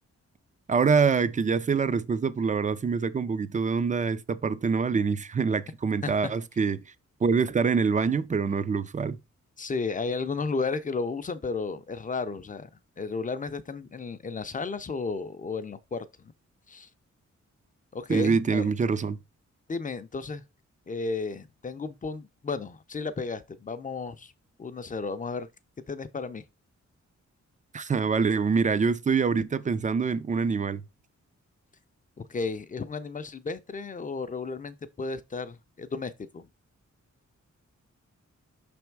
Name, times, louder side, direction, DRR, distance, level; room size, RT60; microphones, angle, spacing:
voice 1, 0.7-6.8 7.2-9.2 18.1-19.2 27.7-30.8, right 5 dB, 25° right, 0.4 m, -25 dB
voice 2, 9.6-12.7 13.0-16.3 16.7-16.9 17.9-18.7 19.7-20.4 20.9-24.3 24.6-25.5 25.9-26.4 32.2-36.5, left 4 dB, 30° left, 0.5 m, -33 dB
6.1 x 3.4 x 4.5 m
wide cardioid pair, 155°, 29 cm